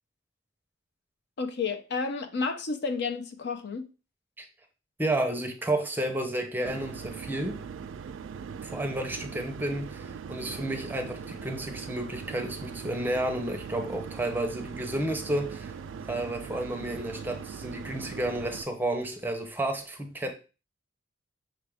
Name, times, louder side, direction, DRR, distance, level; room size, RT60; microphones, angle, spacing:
voice 1, 1.4-3.9, left 4 dB, 60° left, 0.6 m, -31 dB
voice 2, 5.0-7.6 8.6-15.8 16.1-20.3, right 1 dB, 10° right, 0.6 m, -31 dB
sound 1, 6.6-18.6, right 6 dB, 75° right, 0.3 m, -40 dB
5.8 x 2.4 x 3.4 m
head